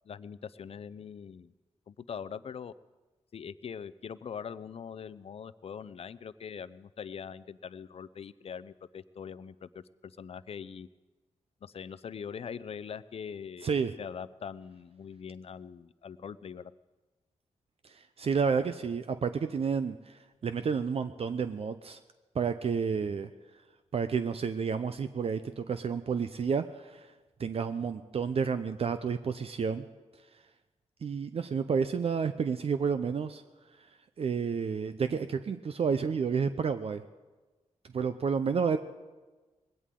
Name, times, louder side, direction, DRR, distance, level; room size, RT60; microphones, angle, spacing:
voice 1, 0.1-1.5 1.9-2.7 3.3-10.9 11.6-16.7, left 7 dB, 55° left, 16 dB, 0.5 m, -42 dB
voice 2, 13.6-13.9 17.8-22.0 22.3-23.3 23.9-27.1 27.4-29.9 31.0-33.4 34.2-37.0 37.9-38.8, right 6 dB, 55° right, 10 dB, 0.6 m, -30 dB
20.0 x 17.0 x 3.8 m, 1.2 s
cardioid pair, 90°, 12 cm